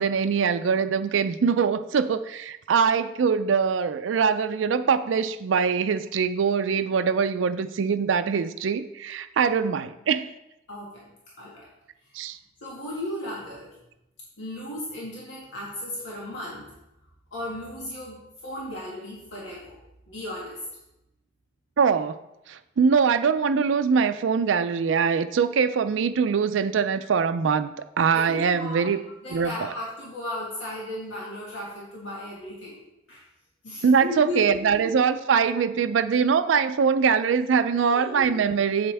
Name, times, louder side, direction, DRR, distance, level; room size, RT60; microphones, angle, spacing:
voice 1, 0.0-10.3 12.1-12.4 21.8-22.2 22.5-29.0 29.3-29.7 33.8-38.9, right 6 dB, 85° right, 10 dB, 0.4 m, -23 dB
voice 2, 10.7-11.0 11.4-11.7 12.6-13.7 14.4-16.7 17.3-19.8 20.1-20.6 28.1-28.9 29.2-32.8 33.1-33.2 33.6-34.7 37.7-38.4, left 1 dB, 85° left, -5 dB, 1.9 m, -35 dB
8.0 x 7.6 x 3.4 m, 0.90 s
head